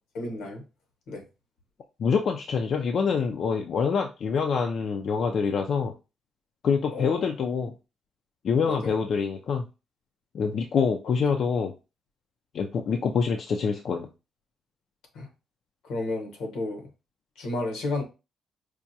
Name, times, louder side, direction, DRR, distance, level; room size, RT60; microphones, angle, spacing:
voice 1, 0.1-0.6 1.1-1.2 6.9-7.2 8.6-8.9 15.1-15.3 15.8-16.9 17.4-18.0, left 2 dB, 85° left, 1.1 m, -32 dB
voice 2, 2.0-5.9 6.6-7.7 8.4-9.7 10.3-11.7 12.5-14.1, left 6 dB, 60° left, 0.4 m, -26 dB
4.7 x 2.2 x 2.7 m
cardioid pair, 90°, 0 cm